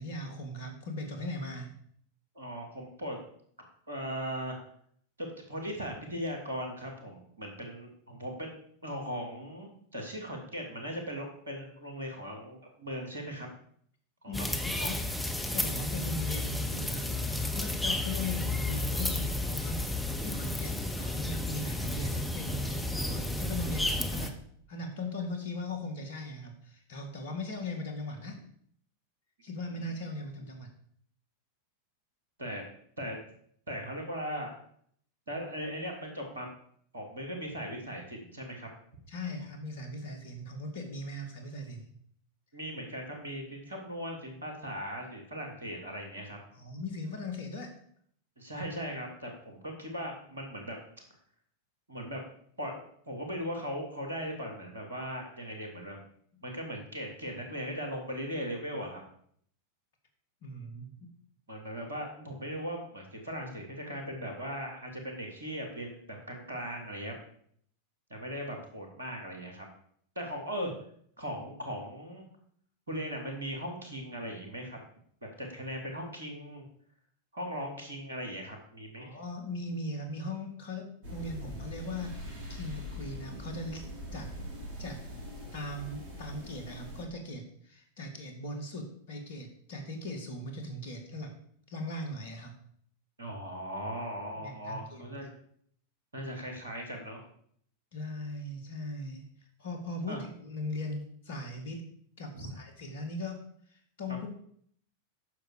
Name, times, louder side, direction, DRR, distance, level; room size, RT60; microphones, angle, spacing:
voice 1, 0.0-1.7 14.3-15.0 15.5-24.4 24.7-28.4 29.4-30.7 39.1-41.9 46.5-47.8 60.4-61.1 79.0-84.3 84.8-85.0 85.5-91.3 91.7-92.6 94.4-95.2 97.9-99.3 99.6-101.8 102.2-104.3, left 1 dB, 55° left, 4 dB, 2.2 m, -39 dB
voice 2, 2.3-3.2 3.9-4.6 5.2-8.5 8.8-13.5 14.2-15.0 29.8-29.9 32.4-32.6 33.0-33.2 33.7-34.6 35.3-36.5 36.9-38.7 42.5-46.4 48.4-50.8 51.9-52.2 52.6-56.0 56.4-59.0 61.5-67.1 68.1-69.7 70.1-70.7 71.2-72.2 72.9-74.8 75.4-76.6 77.3-79.1 93.2-95.3 96.1-97.2 100.1-100.2 102.3-102.5, equal, 75° right, 2 dB, 2.7 m, -38 dB
sound 1, 14.3-24.3, left 2 dB, 5° left, 1.0 m, -32 dB
sound 2, 81.0-87.0, equal, 50° right, 3.0 m, -42 dB
9.4 x 6.8 x 5.0 m, 0.64 s
figure-of-eight pair, 90°, 0 cm